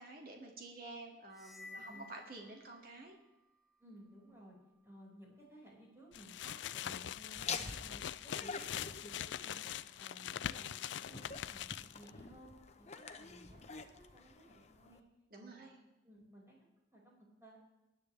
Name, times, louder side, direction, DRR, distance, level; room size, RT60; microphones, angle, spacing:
voice 1, 0.0-3.2 15.3-15.7, right 2 dB, 55° right, 1 dB, 2.2 m, -50 dB
sound 1, 1.3-3.2, left 3 dB, ahead, 1.0 m, -54 dB
voice 2, 1.7-2.1 3.8-4.5 4.8-8.0 8.2-9.6 10.0-11.7 11.9-15.0 15.4-15.7 16.0-16.6 16.9-17.6, right 1 dB, 15° right, -4 dB, 5.5 m, -57 dB
sound 2, 6.1-12.1, left 10 dB, 85° left, 0.4 m, -43 dB
Laughter, 7.3-15.0, left 5 dB, 40° left, 0.9 m, -47 dB
19.5 x 11.0 x 3.4 m, 1.0 s
head